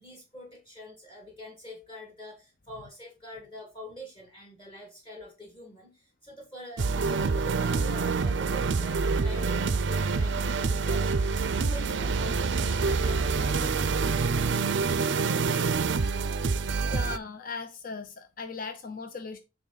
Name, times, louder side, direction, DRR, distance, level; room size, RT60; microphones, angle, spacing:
voice 1, 0.0-13.9 14.2-14.7 15.2-16.6, left 1 dB, 25° left, 0 dB, 1.7 m, -46 dB
sound 1, 6.8-17.2, right 4 dB, 70° right, 0.5 m, -26 dB
voice 2, 16.9-19.4, left 4 dB, 45° left, 6 dB, 0.7 m, -38 dB
8.9 x 3.6 x 3.9 m, 0.28 s
head